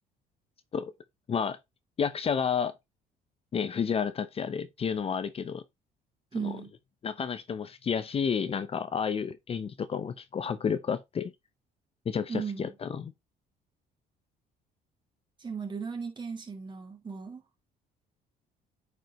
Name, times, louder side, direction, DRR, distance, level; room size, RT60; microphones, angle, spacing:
voice 1, 2.0-2.7 3.5-5.6 6.4-6.6 7.0-11.3 12.1-13.1, left 6 dB, 35° left, 0.7 m, -31 dB
voice 2, 6.3-6.7 12.3-12.8 15.4-17.4, right 6 dB, 25° right, 2.8 m, -36 dB
8.9 x 5.0 x 3.1 m
cardioid pair, 110°, 17 cm